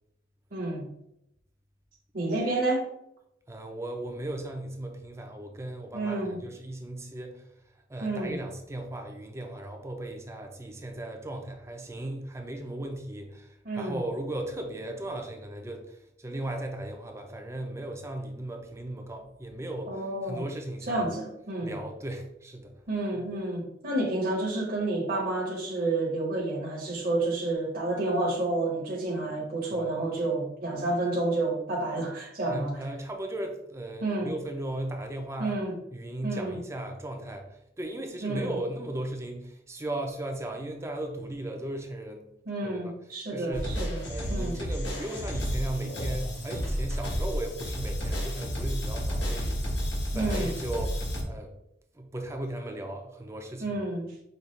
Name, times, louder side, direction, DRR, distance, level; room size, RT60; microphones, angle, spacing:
voice 1, 0.5-0.9 2.1-2.9 5.9-6.4 8.0-8.4 13.6-14.0 19.9-20.4 20.9-21.8 22.9-32.8 34.0-34.3 35.4-35.7 36.2-36.6 38.2-38.5 42.5-44.6 50.1-50.6 53.6-54.1, right 2 dB, 50° right, -3 dB, 0.9 m, -30 dB
voice 2, 3.5-7.5 7.9-21.0 21.6-22.7 23.1-23.3 29.7-30.0 32.4-35.6 35.9-42.3 42.6-42.9 43.3-43.7 44.1-49.8 50.1-51.5 51.9-53.7, right 1 dB, 15° right, 4 dB, 0.5 m, -37 dB
sound 1, 43.5-51.2, equal, 70° left, 1.3 m, -31 dB
5.2 x 2.4 x 3.1 m, 0.80 s
head